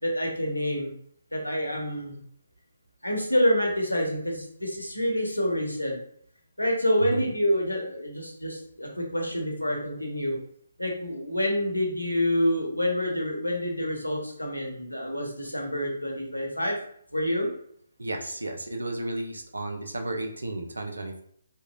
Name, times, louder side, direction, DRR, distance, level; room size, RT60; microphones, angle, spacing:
voice 1, 0.0-0.9 1.3-2.2 3.0-6.0 6.6-10.4 10.8-16.8 17.1-17.5, equal, 90° left, 0 dB, 0.9 m, -27 dB
voice 2, 18.0-21.2, right 2 dB, 75° right, 4 dB, 0.6 m, -33 dB
3.0 x 2.9 x 2.3 m, 0.64 s
figure-of-eight pair, 140°, 0 cm